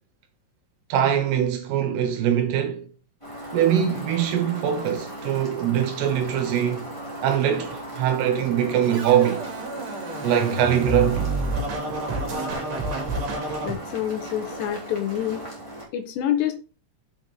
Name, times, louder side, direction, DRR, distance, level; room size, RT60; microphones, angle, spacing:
voice 1, 0.9-2.8 3.5-6.9 7.2-9.5 10.2-11.3, right 9 dB, 75° right, 2.7 m, -22 dB
sound 1, 3.2-15.9, right 1 dB, 15° left, 1.3 m, -37 dB
Scratching (performance technique), 8.9-13.7, right 2 dB, 45° right, 2.6 m, -29 dB
voice 2, 13.6-15.4 15.9-16.6, left 11 dB, 85° left, 2.8 m, -27 dB
7.2 x 5.8 x 3.5 m
omnidirectional pair, 5.3 m